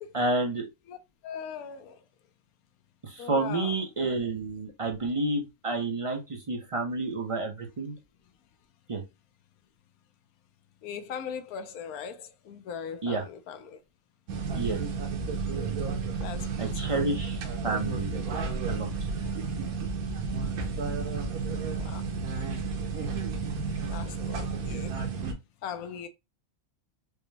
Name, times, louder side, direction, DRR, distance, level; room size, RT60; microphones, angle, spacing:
voice 1, 0.1-0.7 3.0-7.9 8.9-9.0 13.0-13.2 14.5-14.8 16.6-18.1 18.7-18.9, right 2 dB, 45° right, 0.4 m, -30 dB
voice 2, 1.2-2.0 3.2-3.7 10.8-13.8 16.2-16.8 21.7-22.0 23.9-24.9 25.6-26.1, left 7 dB, 85° left, 1.1 m, -39 dB
sound 1, 14.3-25.3, right 4 dB, 90° right, 1.3 m, -32 dB
4.9 x 2.1 x 3.3 m
omnidirectional pair, 1.5 m